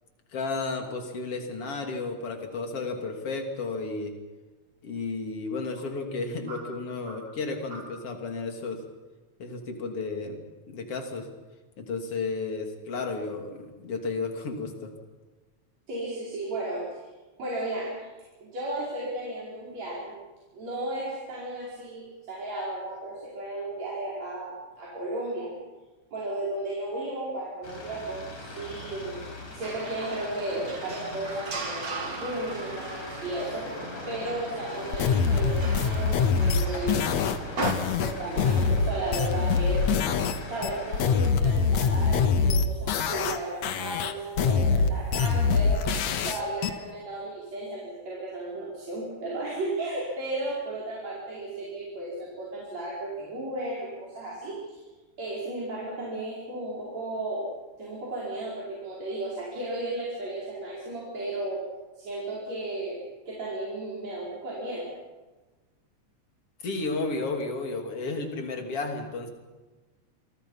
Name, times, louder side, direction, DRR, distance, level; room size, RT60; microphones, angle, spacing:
voice 1, 0.3-4.1 4.8-8.8 9.4-11.3 11.8-14.9 66.6-69.3, left 3 dB, 50° left, 3 dB, 3.7 m, -33 dB
voice 2, 15.9-17.1 17.4-18.1 18.4-20.2 20.5-25.5 26.1-29.2 29.5-33.7 34.1-37.0 38.0-39.9 40.5-45.8 46.2-54.8 55.2-57.5 57.8-61.6 62.0-64.9, right 2 dB, 65° right, -6 dB, 6.2 m, -34 dB
sound 1, 27.6-41.3, left 2 dB, 85° left, 6.2 m, -41 dB
sound 2, 29.6-37.7, right 4 dB, 30° right, 2.5 m, -38 dB
sound 3, 34.9-40.4 40.6-43.4 43.6-46.7, left 5 dB, 70° left, 2.4 m, -24 dB
28.5 x 23.5 x 5.7 m, 1.2 s
omnidirectional pair, 3.3 m